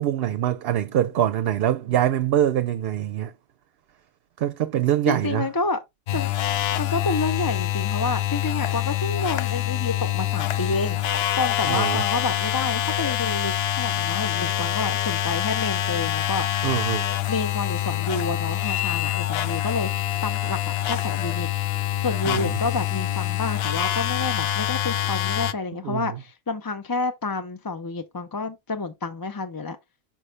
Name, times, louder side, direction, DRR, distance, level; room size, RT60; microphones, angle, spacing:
voice 1, 0.0-3.3 4.4-5.5 11.6-12.0 16.6-17.1 22.2-22.6 25.8-26.1, right 11 dB, 70° right, 0.8 m, -24 dB
voice 2, 5.1-5.8 6.1-6.4 6.8-16.5 17.3-21.5 22.0-29.8, left 3 dB, 25° left, 0.5 m, -29 dB
sound 1, 6.1-25.5, left 12 dB, 70° left, 0.8 m, -25 dB
5.8 x 5.5 x 3.2 m
omnidirectional pair, 1.1 m